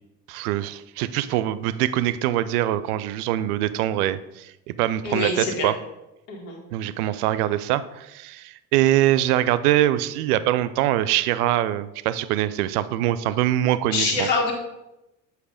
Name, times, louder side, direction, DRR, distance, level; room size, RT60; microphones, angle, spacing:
voice 1, 0.3-5.7 6.7-14.3, right 13 dB, 65° right, 15 dB, 0.5 m, -23 dB
voice 2, 5.0-5.7 6.3-6.6 13.9-14.5, left 3 dB, 60° left, 0 dB, 1.5 m, -25 dB
8.0 x 2.7 x 5.0 m, 0.94 s
figure-of-eight pair, 55°, 49 cm